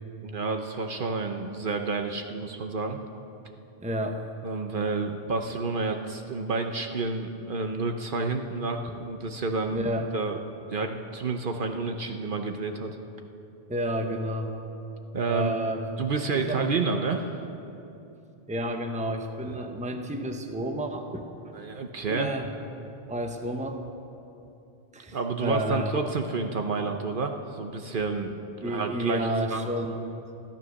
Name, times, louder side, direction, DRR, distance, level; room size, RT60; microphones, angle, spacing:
voice 1, 0.2-3.0 4.4-9.9 10.1-10.4 10.7-13.0 15.1-15.6 16.0-17.5 19.4-19.7 21.5-22.3 25.1-29.6, right 4 dB, 55° right, 5 dB, 0.9 m, -30 dB
voice 2, 3.8-4.2 9.7-10.1 13.7-14.5 15.3-15.8 16.3-16.6 18.5-21.6 22.1-22.5 23.1-23.8 24.9-26.0 28.6-30.0, equal, 5° right, 4 dB, 0.8 m, -31 dB
13.5 x 12.5 x 6.4 m, 2.8 s
omnidirectional pair, 1.1 m